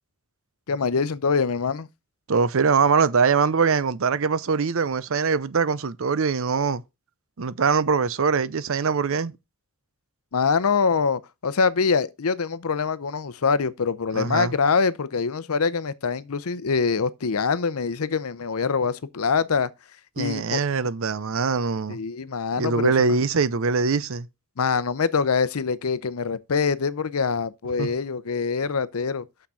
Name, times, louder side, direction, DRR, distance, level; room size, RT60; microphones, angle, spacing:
voice 1, 0.7-1.9 10.3-19.7 20.2-20.6 21.9-23.2 24.6-29.3, left 5 dB, 90° left, 0.7 m, -24 dB
voice 2, 2.3-6.8 7.4-9.3 14.1-14.5 20.2-22.0 22.6-24.3 27.8-27.9, right 5 dB, 65° right, 0.6 m, -22 dB
6.6 x 6.0 x 5.6 m
head